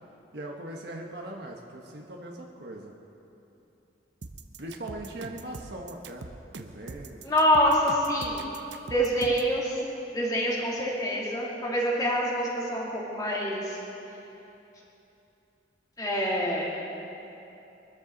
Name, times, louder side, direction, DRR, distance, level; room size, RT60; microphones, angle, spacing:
voice 1, 0.3-2.9 4.6-7.2, right 1 dB, 65° right, 0 dB, 1.2 m, -40 dB
sound 1, 4.2-9.5, right 3 dB, 90° right, 0.8 m, -42 dB
voice 2, 7.2-8.5 8.9-9.8 10.1-13.8 16.0-16.8, equal, 20° left, -5 dB, 2.9 m, -26 dB
23.5 x 13.5 x 4.0 m, 3.0 s
head